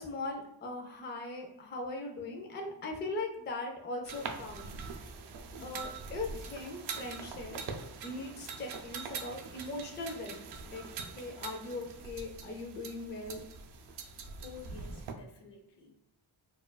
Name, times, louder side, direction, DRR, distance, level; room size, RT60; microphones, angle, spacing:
voice 1, 0.0-4.7 5.6-7.6 8.0-10.9 11.1-13.5, left 2 dB, 25° left, 1 dB, 0.4 m, -40 dB
sound 1, 4.1-15.1, right 5 dB, 65° right, 0.5 m, -43 dB
Musical instrument, 4.2-14.6, left 2 dB, 20° right, 1.1 m, -59 dB
voice 2, 5.5-6.1 14.4-16.0, left 5 dB, 65° left, 3 dB, 0.8 m, -52 dB
4.4 x 2.4 x 2.2 m, 0.83 s
wide cardioid pair, 165°, 44 cm